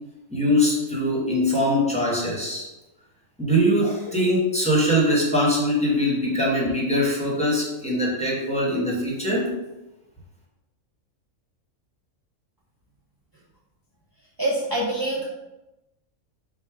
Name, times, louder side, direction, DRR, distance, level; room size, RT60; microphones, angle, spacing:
voice 1, 0.3-2.7 3.4-9.5, equal, 5° left, -5 dB, 0.9 m, -22 dB
voice 2, 14.4-15.2, right 1 dB, 35° right, -6 dB, 0.3 m, -25 dB
4.6 x 2.2 x 4.7 m, 0.99 s
omnidirectional pair, 1.5 m